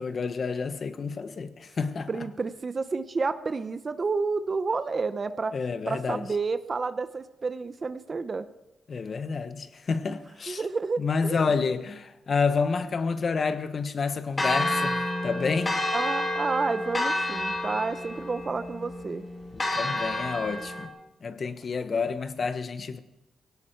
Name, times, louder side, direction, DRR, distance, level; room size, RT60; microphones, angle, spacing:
voice 1, 0.0-2.1 5.5-6.3 8.9-10.6 11.0-15.8 19.5-20.9 21.2-23.0, left 5 dB, 55° left, 1.1 m, -29 dB
voice 2, 2.1-5.6 5.9-8.5 10.1-10.2 10.5-11.4 15.9-19.3 21.9-22.1, right 4 dB, 40° right, 0.7 m, -30 dB
Church bell, 14.4-20.9, left 1 dB, 25° left, 2.4 m, -29 dB
18.0 x 17.0 x 4.6 m
cardioid pair, 75°, 0 cm